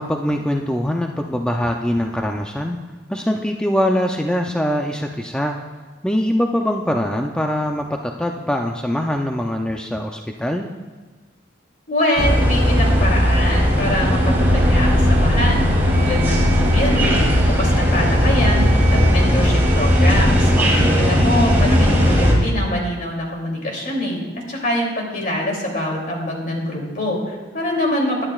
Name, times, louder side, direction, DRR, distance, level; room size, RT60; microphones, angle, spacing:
voice 1, 0.0-2.8 3.1-5.6 6.0-10.7 20.5-21.0, equal, 5° left, 2 dB, 0.5 m, -23 dB
voice 2, 11.9-28.2, left 1 dB, 50° left, -1 dB, 2.9 m, -24 dB
sound 1, 12.2-22.3, equal, 15° right, 3.1 m, -16 dB
20.5 x 11.0 x 2.4 m, 1.4 s
head